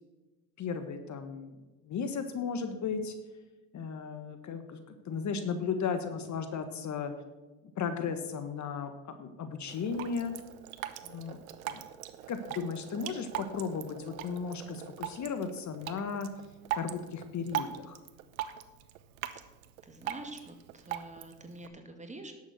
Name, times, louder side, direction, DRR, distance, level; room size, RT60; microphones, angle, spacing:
voice 1, 0.6-3.1 3.7-7.1 7.7-10.3 11.0-11.4 11.7-11.8 12.3-16.3 16.7-18.0, left 6 dB, 45° left, 8 dB, 1.4 m, -35 dB
Drip, 9.7-21.7, right 12 dB, 85° right, 0.9 m, -41 dB
voice 2, 19.8-22.3, right 2 dB, 15° right, 5 dB, 2.0 m, -46 dB
11.0 x 7.3 x 6.4 m, 1.2 s
hypercardioid pair, 80°, 41 cm